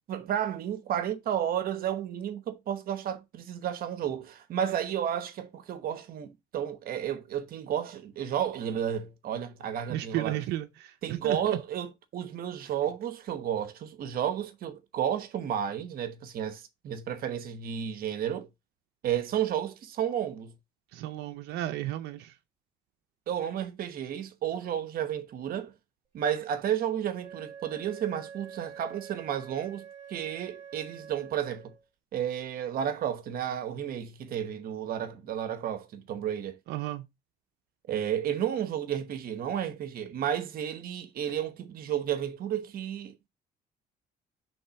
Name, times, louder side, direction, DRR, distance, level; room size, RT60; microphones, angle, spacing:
voice 1, 0.1-10.4 11.0-18.5 19.0-20.5 23.3-25.7 26.1-31.7 32.1-36.6 37.9-43.3, right 9 dB, 60° right, 1.0 m, -32 dB
voice 2, 9.9-11.4 20.9-22.3 36.7-37.0, right 14 dB, 85° right, 0.6 m, -33 dB
Wind instrument woodwind instrument, 27.2-31.8, right 7 dB, 40° right, 2.6 m, -47 dB
5.5 x 3.6 x 5.7 m
cardioid pair, 110°, 17 cm